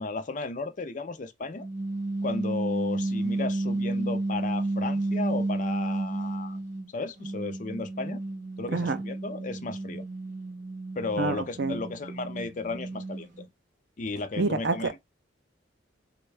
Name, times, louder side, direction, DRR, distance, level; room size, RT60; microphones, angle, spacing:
voice 1, 0.0-1.7 2.2-6.6 6.9-8.2 8.6-10.0 11.0-13.5 14.0-15.0, left 3 dB, 40° left, 0.4 m, -34 dB
sound 1, 1.6-6.9 7.2-13.4, right 2 dB, 40° right, 0.8 m, -31 dB
voice 2, 8.7-9.0 11.2-11.8 14.4-14.9, right 3 dB, 60° right, 0.5 m, -27 dB
3.4 x 2.2 x 3.2 m
head